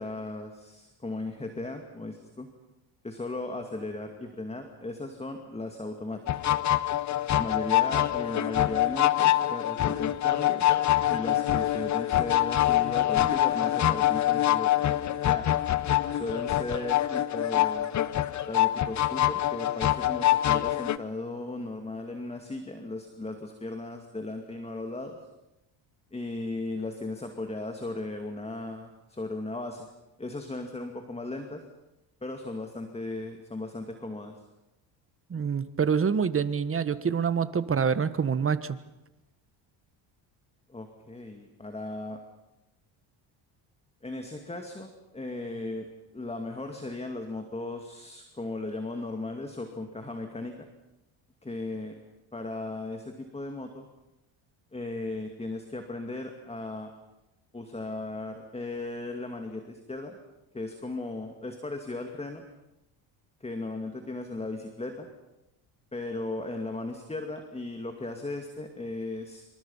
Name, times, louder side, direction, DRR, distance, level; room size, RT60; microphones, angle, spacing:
voice 1, 0.0-2.5 3.0-6.2 7.3-10.7 11.1-15.5 16.1-17.9 18.5-25.2 26.1-29.9 30.2-31.6 32.2-34.4 40.7-42.2 44.0-45.9 46.1-50.6 51.4-52.0 52.3-53.9 54.7-56.9 57.5-60.2 60.5-62.5 63.4-65.1 65.9-69.4, left 2 dB, 15° left, 5 dB, 2.3 m, -36 dB
sound 1, 6.3-21.0, left 13 dB, 35° left, 0.9 m, -25 dB
voice 2, 35.3-38.8, right 6 dB, 25° right, 13 dB, 1.4 m, -26 dB
27.5 x 25.5 x 5.6 m, 0.96 s
cardioid pair, 110°, 47 cm